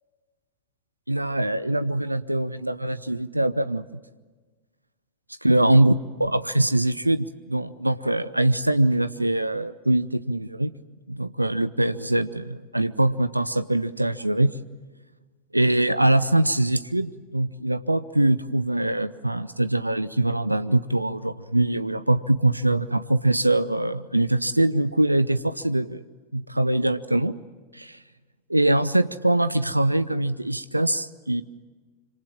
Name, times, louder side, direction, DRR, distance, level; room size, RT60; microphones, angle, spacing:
voice 1, 1.1-3.8 5.4-5.9 6.2-10.7 11.1-14.6 15.5-26.0 26.3-27.3 27.7-28.0 28.5-31.4, right 1 dB, 85° right, 14 dB, 0.7 m, -23 dB
26.5 x 26.0 x 7.4 m, 1.4 s
figure-of-eight pair, 90°, 0 cm